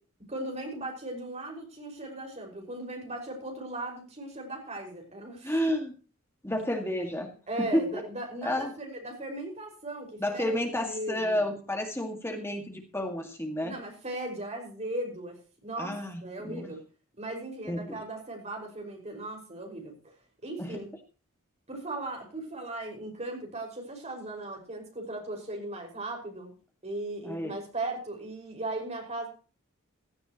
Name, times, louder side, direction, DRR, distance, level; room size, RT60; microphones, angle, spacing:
voice 1, 0.3-5.7 7.5-11.5 13.6-16.8 17.2-20.1 20.4-20.9 21.7-26.5 26.8-29.3, right 2 dB, 30° right, 1 dB, 5.7 m, -38 dB
voice 2, 5.4-5.9 6.4-7.3 7.6-8.0 8.4-8.7 10.2-13.8 15.8-16.7 17.7-18.0 20.6-20.8 27.2-27.6, left 1 dB, 10° left, 3 dB, 2.1 m, -31 dB
16.5 x 14.0 x 3.1 m, 0.36 s
head